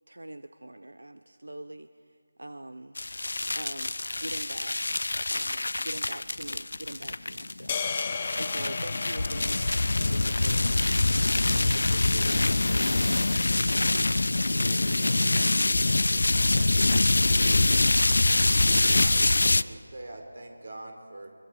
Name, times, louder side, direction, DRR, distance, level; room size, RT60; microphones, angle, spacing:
voice 1, 0.1-3.0 3.5-5.0 5.3-14.2, right 1 dB, 90° right, 11 dB, 0.8 m, -43 dB
sound 1, 3.0-19.6, left 2 dB, 70° left, 0.5 m, -25 dB
sound 2, 7.7-12.0, left 5 dB, 25° left, 0.9 m, -36 dB
sound 3, 10.5-14.2 14.5-15.5, left 4 dB, 10° left, 2.1 m, -54 dB
voice 2, 15.0-17.7, right 2 dB, 45° right, -2 dB, 4.6 m, -45 dB
voice 3, 18.5-21.3, right 2 dB, 65° right, 4 dB, 4.0 m, -44 dB
24.0 x 23.0 x 5.0 m, 2.2 s
figure-of-eight pair, 165°, 0 cm